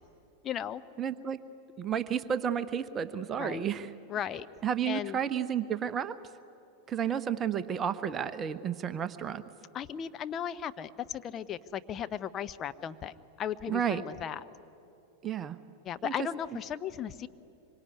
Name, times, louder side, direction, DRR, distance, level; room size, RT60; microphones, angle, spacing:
voice 1, 0.4-0.8 3.4-3.6 4.1-4.5 4.9-5.2 9.7-14.4 15.8-17.3, left 9 dB, 30° left, 10 dB, 0.8 m, -36 dB
voice 2, 1.0-1.4 1.8-3.9 4.6-6.2 6.9-9.4 13.7-14.0 15.2-15.6 16.0-16.1, right 8 dB, 25° right, 12 dB, 0.9 m, -31 dB
25.5 x 24.0 x 9.8 m, 2.8 s
figure-of-eight pair, 90°, 0 cm